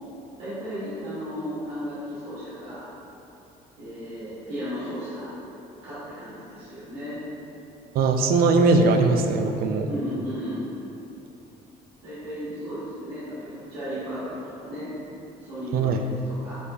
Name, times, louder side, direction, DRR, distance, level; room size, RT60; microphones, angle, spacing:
voice 1, 0.4-2.9 3.8-5.4 5.8-7.2 9.9-10.7 12.0-14.9 15.4-16.6, equal, 90° right, -13 dB, 1.4 m, -34 dB
voice 2, 7.9-9.9 15.7-16.0, right 3 dB, 65° right, 5 dB, 0.4 m, -20 dB
5.0 x 4.3 x 2.3 m, 2.8 s
cardioid pair, 110°, 17 cm